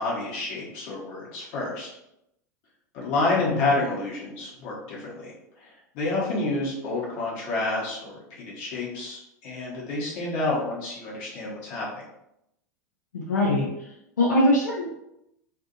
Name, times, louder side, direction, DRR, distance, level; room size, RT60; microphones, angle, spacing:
voice 1, 0.0-1.9 2.9-5.3 5.6-11.8, left 2 dB, 50° left, -4 dB, 1.1 m, -29 dB
voice 2, 13.1-13.7 14.2-14.9, left 1 dB, 80° left, -6 dB, 0.7 m, -22 dB
2.6 x 2.5 x 2.5 m, 0.82 s
figure-of-eight pair, 85°, 9 cm